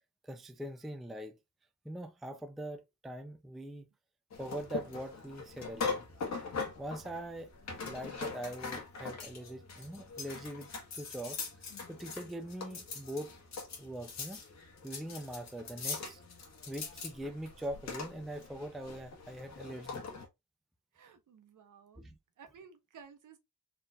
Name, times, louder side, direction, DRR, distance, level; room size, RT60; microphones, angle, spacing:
voice 1, 0.2-1.4 1.8-3.9 4.4-6.0 6.8-7.5 7.8-11.4 11.9-13.3 13.8-14.4 14.8-16.2 16.7-20.1 22.0-22.2, right 1 dB, ahead, 0.4 m, -42 dB
sound 1, 4.3-20.3, left 4 dB, 50° left, 1.4 m, -42 dB
voice 2, 20.9-22.0 22.4-23.4, right 6 dB, 60° right, 1.2 m, -55 dB
4.3 x 3.7 x 2.4 m
wide cardioid pair, 155°, 36 cm